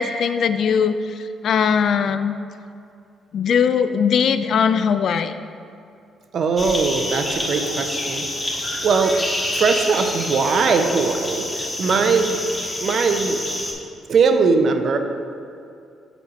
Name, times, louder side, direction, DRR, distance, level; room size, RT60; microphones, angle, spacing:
voice 1, 0.0-2.3 3.3-5.4, left 6 dB, 65° left, 10 dB, 0.3 m, -20 dB
voice 2, 6.3-8.2 8.8-9.1 9.5-12.5 12.8-13.4 14.1-15.0, right 4 dB, 60° right, 6 dB, 0.6 m, -20 dB
sound 1, 6.6-13.7, left 1 dB, 20° left, 1.3 m, -27 dB
7.0 x 4.4 x 4.2 m, 2.5 s
cardioid pair, 90°, 0 cm